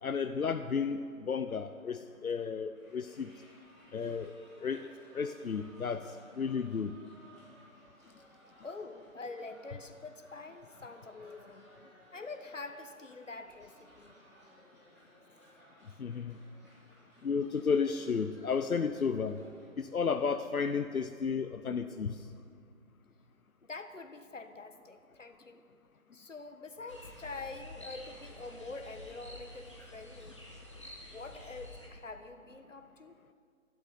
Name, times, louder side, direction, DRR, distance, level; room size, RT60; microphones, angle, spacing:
voice 1, 0.0-3.3 3.9-4.3 4.6-4.9 5.1-6.9 16.0-16.4 17.2-19.4 19.8-22.2, left 5 dB, 85° left, 9 dB, 0.8 m, -33 dB
sound 1, 2.7-19.7, equal, 10° right, 2.7 m, -61 dB
voice 2, 8.6-11.7 12.1-14.1 23.6-25.6 26.1-30.4 31.1-33.1, left 3 dB, 60° left, 8 dB, 1.4 m, -46 dB
sound 2, 26.9-31.9, left 1 dB, 20° left, 1.4 m, -49 dB
22.5 x 12.0 x 4.1 m, 2.2 s
figure-of-eight pair, 180°, 42 cm